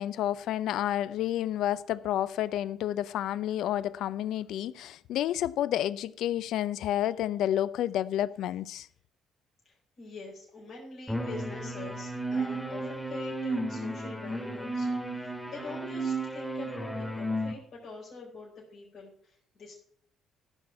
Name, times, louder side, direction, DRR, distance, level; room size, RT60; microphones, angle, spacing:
voice 1, 0.0-8.9, left 12 dB, 70° left, 0.5 m, -30 dB
voice 2, 9.6-19.7, left 3 dB, 50° left, 4.5 m, -45 dB
sound 1, 11.1-17.5, right 1 dB, 5° left, 2.4 m, -33 dB
14.5 x 6.1 x 5.7 m
hypercardioid pair, 55°, 0 cm